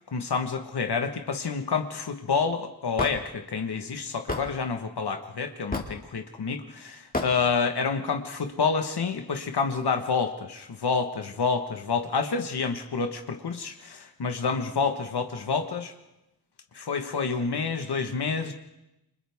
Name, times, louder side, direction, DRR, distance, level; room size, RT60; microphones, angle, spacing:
voice 1, 0.1-15.9 16.7-18.5, left 5 dB, 85° left, 5 dB, 1.5 m, -28 dB
Hammer / Wood, 3.0-3.2 4.3-4.5 5.7-6.0 7.1-7.3, left 2 dB, 20° left, 2.4 m, -29 dB
29.0 x 25.5 x 3.6 m, 0.90 s
wide cardioid pair, 95°, 39 cm